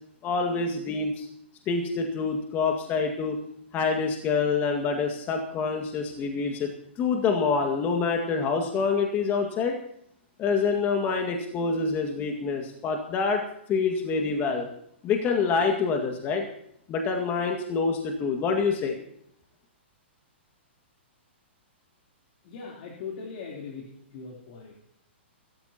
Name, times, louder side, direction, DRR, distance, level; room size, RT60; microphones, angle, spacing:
voice 1, 0.2-1.3 1.7-3.4 3.7-9.8 10.4-13.4 13.7-14.7 15.0-16.4 16.9-19.0, left 5 dB, 30° left, 3 dB, 2.0 m, -26 dB
voice 2, 22.4-24.7, left 5 dB, 50° left, -1 dB, 3.6 m, -40 dB
25.0 x 13.5 x 2.9 m, 0.72 s
hypercardioid pair, 130°, 6 cm